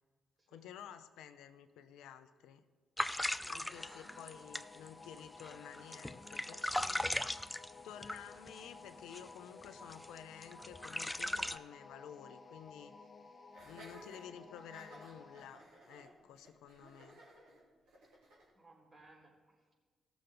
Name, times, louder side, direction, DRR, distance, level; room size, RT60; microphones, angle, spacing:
voice 1, 0.5-2.6 3.5-7.1 7.8-12.9 13.6-17.2, left 9 dB, 85° left, 10 dB, 0.5 m, -52 dB
sound 1, 3.0-8.6 9.1-9.3 9.6-11.6, left 1 dB, 10° left, 0.5 m, -38 dB
voice 2, 3.3-4.0 4.3-4.4 16.0-16.2 18.5-19.7, right 2 dB, 40° right, -2 dB, 3.9 m, -63 dB
sound 2, 3.7-15.6, left 4 dB, 35° left, 0.9 m, -55 dB
Laughter, 13.5-18.5, right 1 dB, 90° right, 3.2 m, -57 dB
17.0 x 6.9 x 3.8 m, 1.5 s
supercardioid pair, 55°, 0 cm